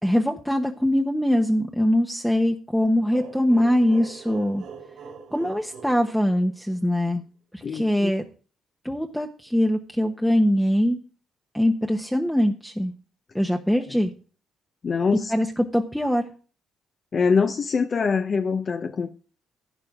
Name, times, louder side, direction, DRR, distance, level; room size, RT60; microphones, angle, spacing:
voice 1, 0.0-4.6 5.3-7.2 7.5-8.2 8.8-11.0 11.5-12.9 13.3-14.1 15.3-16.3, equal, ahead, 1.1 m, -22 dB
sound 1, 3.1-6.8, right 6 dB, 70° right, 3.2 m, -42 dB
voice 2, 7.6-8.1 14.8-15.3 17.1-19.1, left 5 dB, 45° left, 0.9 m, -24 dB
12.0 x 9.5 x 3.7 m
cardioid pair, 90°, 0 cm